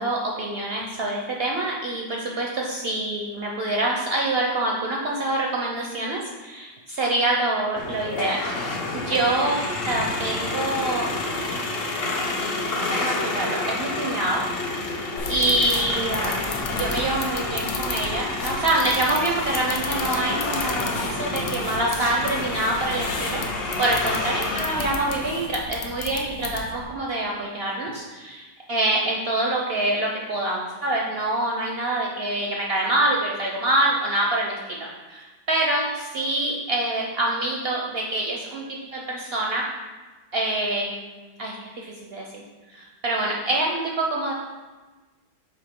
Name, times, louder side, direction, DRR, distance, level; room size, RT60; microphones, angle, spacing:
voice 1, 0.0-8.4 8.9-9.6 9.8-11.1 12.2-14.4 15.3-16.4 16.7-23.4 23.8-39.6 40.3-41.1 41.4-42.2 42.7-44.3, right 2 dB, 65° right, -1 dB, 0.6 m, -26 dB
sound 1, 7.8-25.3, left 2 dB, 55° left, 0.7 m, -29 dB
sound 2, 15.2-26.8, left 4 dB, 80° left, 1.3 m, -34 dB
8.8 x 3.0 x 3.6 m, 1.3 s
omnidirectional pair, 1.7 m